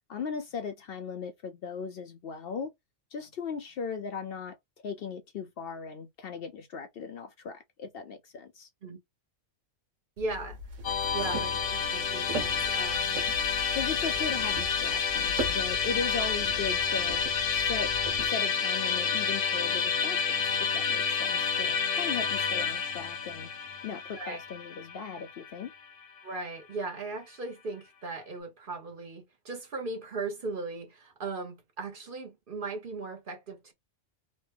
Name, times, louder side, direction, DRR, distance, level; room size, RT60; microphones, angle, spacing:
voice 1, 0.1-2.7 3.1-4.6 4.8-8.7 13.7-17.2 17.5-17.9 18.2-23.5 23.8-25.7, left 5 dB, 60° left, 0.7 m, -38 dB
voice 2, 10.2-10.6 11.1-13.3 24.1-24.4 26.2-33.7, right 3 dB, 50° right, 0.9 m, -38 dB
sound 1, 10.2-18.3, equal, 85° right, 1.2 m, -40 dB
Musical instrument, 10.8-26.0, left 6 dB, 90° left, 1.1 m, -29 dB
3.1 x 2.1 x 3.3 m
omnidirectional pair, 1.2 m